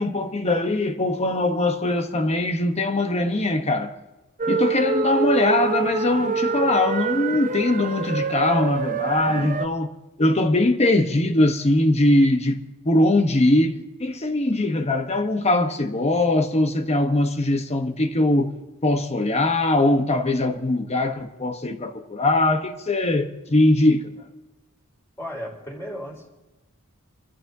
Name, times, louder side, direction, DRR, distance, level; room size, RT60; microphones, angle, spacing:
voice 1, 0.0-3.9 4.5-9.9 10.2-18.5 18.8-24.1, left 2 dB, 30° left, 1.1 m, -21 dB
sound 1, 4.4-9.7, right 4 dB, 40° right, 0.6 m, -26 dB
voice 2, 25.2-26.3, equal, 15° left, 4.3 m, -34 dB
29.0 x 14.0 x 2.8 m
head